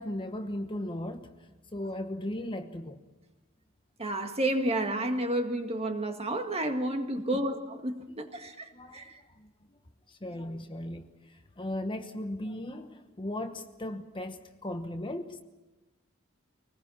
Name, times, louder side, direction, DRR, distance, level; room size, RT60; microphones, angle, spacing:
voice 1, 0.0-3.0 7.3-7.4 8.4-9.8 10.1-15.4, left 1 dB, 25° left, 7 dB, 1.1 m, -37 dB
voice 2, 4.0-9.2, right 1 dB, 30° right, 5 dB, 1.9 m, -31 dB
23.5 x 19.5 x 7.2 m, 1.1 s
head